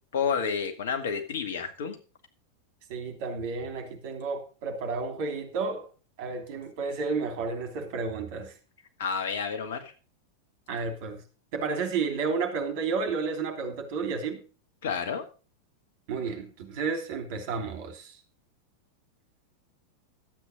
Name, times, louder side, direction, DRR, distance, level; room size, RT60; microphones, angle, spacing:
voice 1, 0.1-2.0 9.0-9.9 14.8-15.2, left 6 dB, 60° left, 7 dB, 2.1 m, -30 dB
voice 2, 2.9-5.9 6.2-8.5 10.7-11.2 11.5-14.4 16.1-18.1, right 4 dB, 50° right, 5 dB, 3.1 m, -31 dB
12.5 x 8.6 x 5.1 m, 0.35 s
figure-of-eight pair, 90°, 0 cm